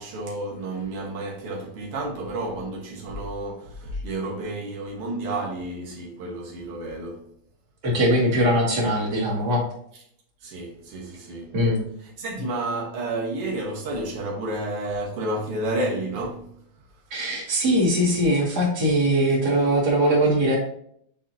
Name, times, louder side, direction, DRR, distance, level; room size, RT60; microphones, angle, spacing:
voice 1, 0.0-7.3 10.4-11.6 12.2-16.5, right 2 dB, 90° right, 2.4 m, -31 dB
voice 2, 7.8-9.6 11.5-11.8 17.1-20.6, equal, 50° right, 2.6 m, -21 dB
6.4 x 6.0 x 2.7 m
omnidirectional pair, 2.4 m